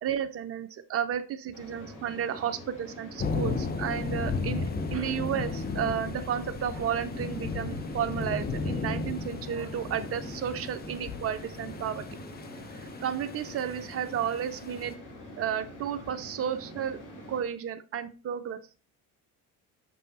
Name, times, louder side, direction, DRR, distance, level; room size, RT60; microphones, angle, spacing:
voice 1, 0.0-4.6 4.9-12.1 12.7-14.9 15.4-17.0 17.3-18.6, right 9 dB, 30° right, 10 dB, 0.7 m, -32 dB
sound 1, 1.5-17.4, left 1 dB, 40° left, 2.1 m, -45 dB
sound 2, 3.2-14.9, left 4 dB, 20° left, 0.8 m, -35 dB
6.3 x 5.4 x 4.1 m, 0.37 s
figure-of-eight pair, 55°, 47 cm